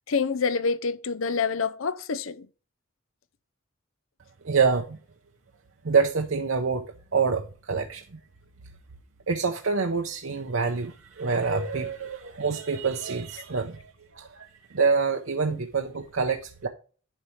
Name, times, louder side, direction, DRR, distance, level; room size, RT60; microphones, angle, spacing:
voice 1, 0.1-2.5 15.5-15.6, left 5 dB, 75° left, 0.7 m, -27 dB
voice 2, 4.4-5.0 5.8-6.8 7.1-8.2 9.3-16.7, right 5 dB, 70° right, 0.8 m, -26 dB
10.5 x 5.6 x 3.2 m
head